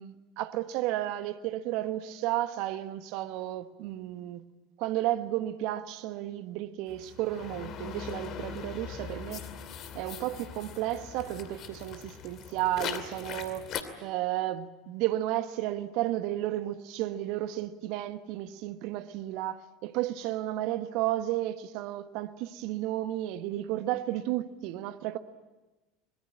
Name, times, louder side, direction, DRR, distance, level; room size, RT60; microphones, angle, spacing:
voice 1, 0.0-4.4 4.8-9.4 9.9-13.7 14.0-25.2, right 14 dB, 60° right, 1.3 m, -33 dB
sound 1, 6.9-13.8, left 8 dB, 45° left, 2.6 m, -41 dB
24.5 x 21.5 x 8.9 m
figure-of-eight pair, 75°, 0 cm